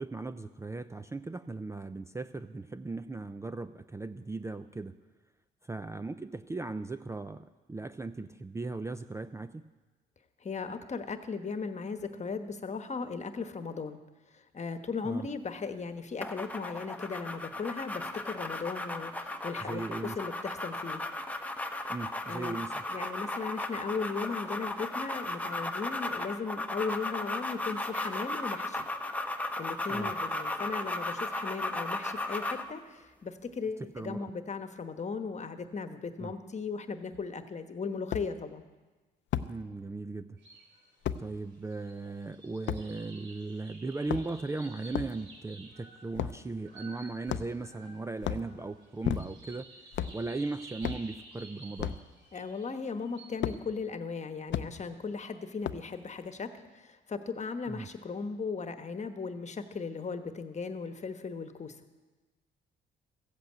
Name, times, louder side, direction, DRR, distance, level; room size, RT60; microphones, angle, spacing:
voice 1, 0.0-5.0 5.7-9.6 15.0-15.3 19.6-20.2 21.9-22.7 29.9-30.1 33.9-34.3 36.2-36.3 39.5-40.4 41.2-49.7 50.1-52.0 57.7-57.9, right 3 dB, 15° right, 11 dB, 0.4 m, -37 dB
voice 2, 10.4-14.0 14.3-21.0 22.3-22.6 22.9-28.8 29.6-38.6 52.3-61.8, left 5 dB, 35° left, 8 dB, 1.2 m, -37 dB
sound 1, 16.2-32.7, left 1 dB, 5° left, 1.0 m, -36 dB
sound 2, 37.1-37.2 38.1-38.3 39.3-39.5 41.0-41.2 42.7-42.8 43.9-44.5 44.9-45.2 46.1-46.4 47.3-47.7 48.2-48.5 49.0-49.5 49.9-50.2 50.8-51.1 51.8-52.0 53.4-53.6 54.5-54.7 55.6-55.9, left 10 dB, 70° left, 0.6 m, -33 dB
sound 3, 40.4-40.8 41.1-53.5, right 3 dB, 65° right, 3.5 m, -53 dB
15.0 x 8.1 x 8.0 m, 1.2 s
cardioid pair, 90°, 20 cm